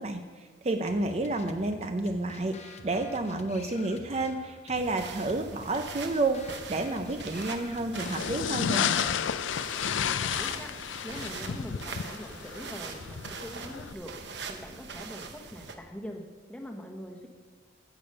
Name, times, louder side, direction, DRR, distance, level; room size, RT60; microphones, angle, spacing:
voice 1, 0.0-8.9, right 2 dB, 35° right, 7 dB, 0.5 m, -30 dB
sound 1, 0.9-8.5, left 2 dB, 35° left, 0.7 m, -49 dB
sound 2, 4.8-15.7, right 4 dB, 65° right, 0.9 m, -42 dB
sound 3, 7.9-13.9, left 8 dB, 80° left, 0.4 m, -32 dB
voice 2, 9.9-10.7 11.0-14.1 14.5-16.2 16.5-17.3, equal, 5° left, 1 dB, 1.1 m, -43 dB
15.0 x 6.9 x 5.4 m, 1.5 s
head